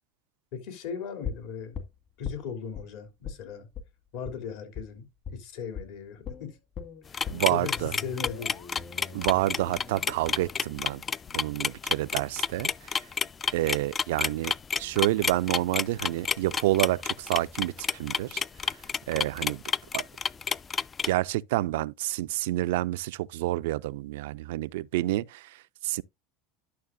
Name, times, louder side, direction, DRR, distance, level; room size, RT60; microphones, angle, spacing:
voice 1, 0.5-1.8 2.2-3.7 4.1-6.6 7.1-8.6, left 6 dB, 70° left, 3.2 m, -38 dB
sound 1, 1.2-2.9 3.2-3.4 3.7-3.9 4.2-4.4 4.8-4.9 5.3-5.4 5.8-5.9 6.3-12.2 12.5-12.6, left 6 dB, 45° left, 1.8 m, -41 dB
sound 2, 7.1-21.1, left 6 dB, 30° left, 0.4 m, -29 dB
voice 2, 7.3-7.9 9.1-11.0 11.3-13.0 13.5-18.7 19.1-19.6 19.9-20.1 21.1-26.0, right 16 dB, 80° right, 0.3 m, -29 dB
11.5 x 6.3 x 2.6 m
supercardioid pair, 100°, 0 cm